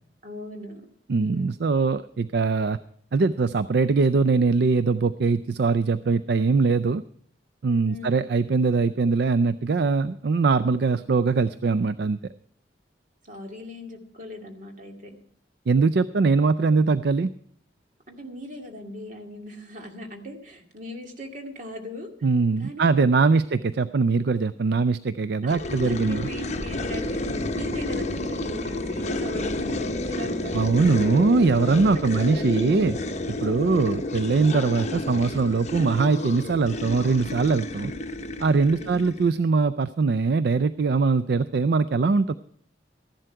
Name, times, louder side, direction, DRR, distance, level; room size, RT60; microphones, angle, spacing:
voice 1, 0.2-0.8 1.2-1.6 7.8-8.2 13.2-15.2 18.1-22.1 22.6-23.1 25.4-31.3 31.6-33.0 38.7-39.1, left 1 dB, 45° right, 3 dB, 2.3 m, -39 dB
voice 2, 1.1-2.8 3.1-7.0 7.6-12.2 15.7-17.3 22.2-26.3 30.5-33.0 33.3-37.9 38.4-42.3, right 4 dB, 65° right, 14 dB, 0.4 m, -22 dB
sound 1, 25.5-39.4, left 1 dB, 40° left, 0.9 m, -30 dB
14.5 x 11.5 x 4.6 m, 0.63 s
head